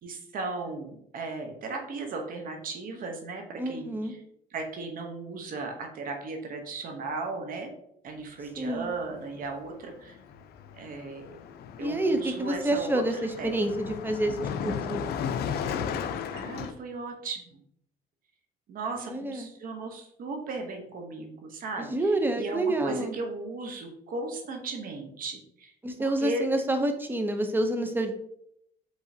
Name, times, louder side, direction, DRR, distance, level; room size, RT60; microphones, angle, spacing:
voice 1, 0.0-4.2 4.5-7.7 8.0-10.2 10.7-11.3 11.8-13.5 16.3-17.6 18.7-25.7 26.0-26.4, right 3 dB, 55° right, 3 dB, 0.9 m, -36 dB
voice 2, 3.6-4.1 8.6-8.9 11.8-15.0 19.0-19.5 21.9-23.1 25.8-28.1, right 1 dB, 10° right, 6 dB, 0.6 m, -28 dB
Car passing by, 9.2-9.5 9.7-16.7, left 7 dB, 70° left, 0.5 m, -35 dB
4.9 x 3.9 x 2.7 m, 0.73 s
cardioid pair, 110°, 17 cm